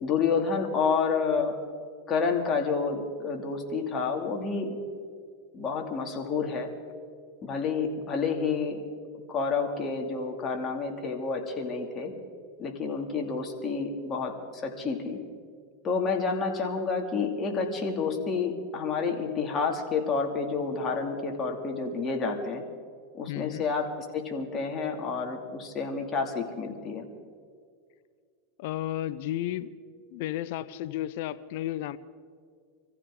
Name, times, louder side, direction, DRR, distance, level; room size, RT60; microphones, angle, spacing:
voice 1, 0.0-1.5 2.1-4.8 5.5-6.7 7.4-8.8 9.3-12.1 12.6-15.2 15.8-22.6 23.1-27.1, left 5 dB, 30° left, 2 dB, 2.6 m, -29 dB
voice 2, 23.3-23.6 28.6-29.7 30.1-32.0, left 13 dB, 65° left, 16 dB, 0.6 m, -33 dB
25.5 x 15.0 x 3.8 m, 2.1 s
hypercardioid pair, 115°, 0 cm